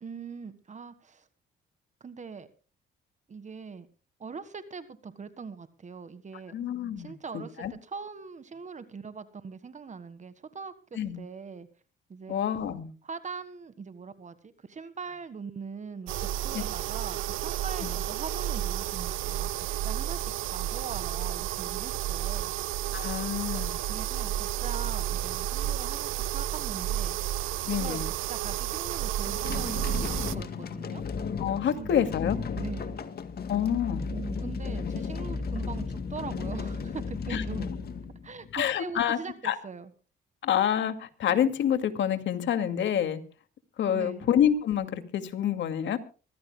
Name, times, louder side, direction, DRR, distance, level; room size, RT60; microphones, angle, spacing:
voice 1, 0.0-1.3 2.0-2.5 3.3-3.9 4.2-6.5 7.0-11.7 12.1-12.3 13.0-16.1 16.4-22.5 23.5-27.2 27.8-31.0 31.7-32.1 32.6-33.0 34.1-37.7 38.2-39.9 43.9-44.3, right 5 dB, 40° right, 12 dB, 1.5 m, -42 dB
voice 2, 6.5-7.7 10.9-11.2 12.3-12.9 16.5-16.6 17.8-18.0 22.9-23.7 27.7-28.1 31.4-32.4 33.5-34.1 37.3-37.4 38.5-39.2 39.4-39.6 40.4-43.2 43.8-46.0, left 9 dB, 70° left, 8 dB, 2.2 m, -27 dB
sound 1, 16.1-30.4, right 12 dB, 90° right, 0.7 m, -31 dB
sound 2, 29.2-38.7, left 5 dB, 50° left, 2.0 m, -34 dB
25.0 x 15.5 x 2.2 m, 0.35 s
cardioid pair, 90°, 20 cm